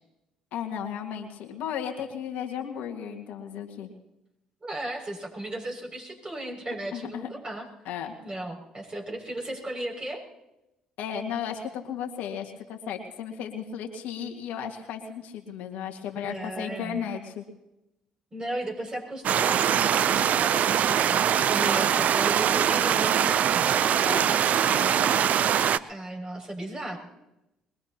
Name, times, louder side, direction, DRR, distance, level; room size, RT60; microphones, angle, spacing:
voice 1, 0.5-3.9 6.9-7.3 7.9-8.1 11.0-17.4 24.1-24.4 24.6-25.1, left 8 dB, 70° left, 3 dB, 1.9 m, -35 dB
voice 2, 4.6-7.7 8.2-10.2 16.2-17.0 18.3-23.8 25.9-27.0, right 1 dB, 30° right, -1 dB, 6.4 m, -36 dB
sound 1, 19.2-25.8, right 9 dB, 55° right, 0.5 m, -22 dB
22.5 x 21.0 x 3.0 m, 0.91 s
hypercardioid pair, 55°, 3 cm